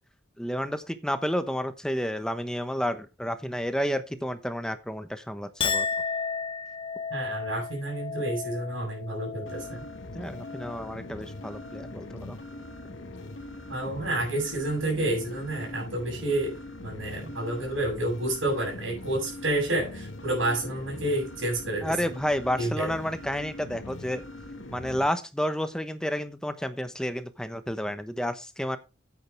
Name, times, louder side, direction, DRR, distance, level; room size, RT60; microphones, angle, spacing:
voice 1, 0.4-5.9 10.1-12.4 21.8-24.2 24.7-28.8, equal, 5° left, 10 dB, 1.0 m, -30 dB
Chink clink, 5.6-12.2 12.5-13.1, left 5 dB, 25° left, 0.5 m, -35 dB
voice 2, 7.1-9.8 13.7-21.9 22.6-22.9, right 1 dB, 80° right, -2 dB, 6.4 m, -29 dB
sound 1, 9.5-25.1, left 1 dB, 85° left, 1.8 m, -42 dB
10.5 x 8.9 x 3.4 m, 0.28 s
head